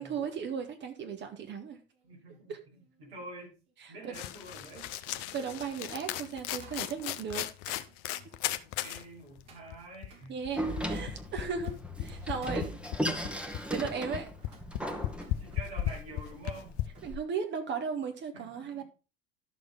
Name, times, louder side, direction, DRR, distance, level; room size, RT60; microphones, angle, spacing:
voice 1, 0.0-1.8 2.5-2.6 3.8-4.1 5.3-7.8 8.2-8.3 10.3-12.8 13.5-14.3 17.0-18.8, right 6 dB, 35° right, 1.8 m, -36 dB
sound 1, 1.2-11.8 12.2-13.2 13.7-17.1 17.5-17.8, right 5 dB, 55° right, 3.7 m, -61 dB
voice 2, 2.0-3.6 3.9-5.4 8.6-10.3 11.6-11.7 12.5-12.6 12.9-13.0 15.4-16.8 18.3-18.8, right 2 dB, 75° right, 5.8 m, -48 dB
sound 2, 4.1-9.0 9.4-9.5 9.7-16.8, left 14 dB, 45° left, 0.8 m, -36 dB
Door, 10.6-17.2, equal, 5° right, 1.5 m, -37 dB
11.5 x 6.6 x 3.6 m
figure-of-eight pair, 65°, 31 cm